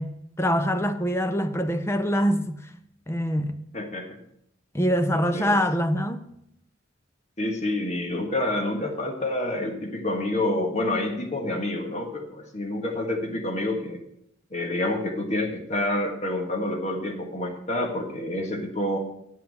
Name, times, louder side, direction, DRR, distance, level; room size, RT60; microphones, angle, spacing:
voice 1, 0.0-2.6 3.1-3.6 4.7-6.3, equal, 15° left, 0.6 m, -24 dB
voice 2, 3.7-4.1 5.1-5.6 7.4-14.0 14.5-19.0, left 1 dB, 35° left, 1.6 m, -28 dB
9.1 x 5.9 x 7.8 m
head